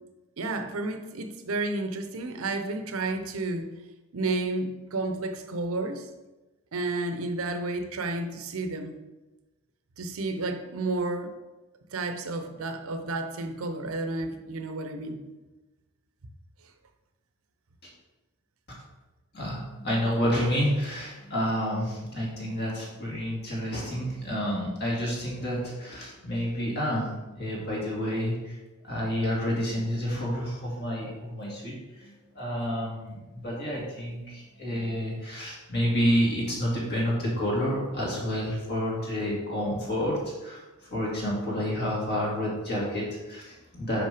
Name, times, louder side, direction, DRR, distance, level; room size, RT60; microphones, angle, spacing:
voice 1, 0.4-3.7 4.1-6.1 6.7-9.0 10.0-11.3 11.9-15.2, right 2 dB, 65° right, 7 dB, 0.7 m, -31 dB
voice 2, 19.3-27.1 27.4-28.6 28.8-40.6 40.9-44.0, equal, 50° left, -4 dB, 2.2 m, -29 dB
5.7 x 5.4 x 5.0 m, 1.1 s
head